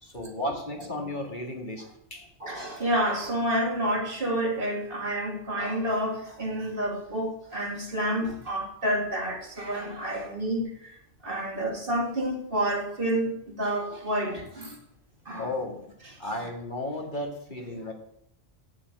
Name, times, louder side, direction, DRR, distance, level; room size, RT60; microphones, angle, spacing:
voice 1, 0.0-2.3 15.4-15.9 16.2-17.9, left 1 dB, 40° left, 2.2 m, -34 dB
voice 2, 2.4-11.0 11.2-14.8 15.3-15.5 16.4-16.5, right 1 dB, 50° right, 2.3 m, -29 dB
8.7 x 7.6 x 8.4 m
omnidirectional pair, 1.2 m